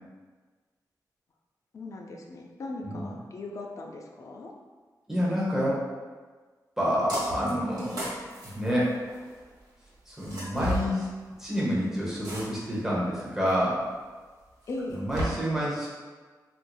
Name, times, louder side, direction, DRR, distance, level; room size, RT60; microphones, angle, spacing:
voice 1, 1.7-4.5 14.7-15.0, left 2 dB, 50° left, 1 dB, 0.4 m, -38 dB
voice 2, 5.1-5.9 6.8-8.1 8.4-9.0 10.1-11.1 11.4-13.8 14.9-15.9, equal, 5° right, -7 dB, 0.8 m, -28 dB
sound 1, 7.1-7.5 7.8-9.3 10.2-10.9 12.2-12.8 13.5-13.6 14.7-15.2, equal, 70° right, 1.2 m, -34 dB
4.4 x 2.6 x 2.3 m, 1.4 s
wide cardioid pair, 150°, 7 cm